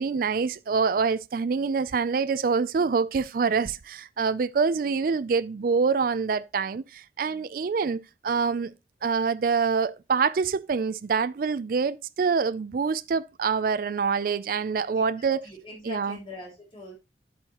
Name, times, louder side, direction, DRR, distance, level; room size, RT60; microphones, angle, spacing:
voice 1, 0.0-8.7 9.0-15.4 15.9-16.2, right 5 dB, 50° right, 0.4 m, -26 dB
voice 2, 14.8-16.9, left 1 dB, 30° left, 3.6 m, -43 dB
8.8 x 8.5 x 2.9 m
head